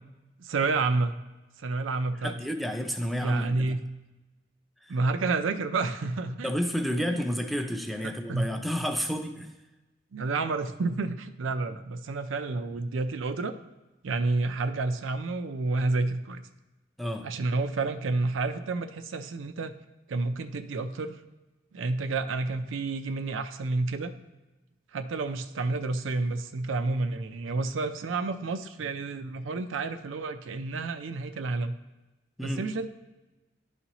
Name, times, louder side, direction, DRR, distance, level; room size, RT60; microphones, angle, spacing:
voice 1, 0.4-1.2 1.6-2.4 3.1-3.8 4.9-6.5 7.0-7.2 8.0-8.5 10.1-13.5 14.0-16.4 17.2-19.7 20.1-21.2 21.7-24.1 24.9-31.7 32.4-32.9, right 3 dB, 90° right, 9 dB, 0.5 m, -30 dB
voice 2, 2.2-3.8 4.8-5.0 6.4-9.5 17.0-17.3 32.4-32.6, equal, ahead, 4 dB, 0.4 m, -31 dB
11.0 x 4.1 x 3.0 m, 1.1 s
head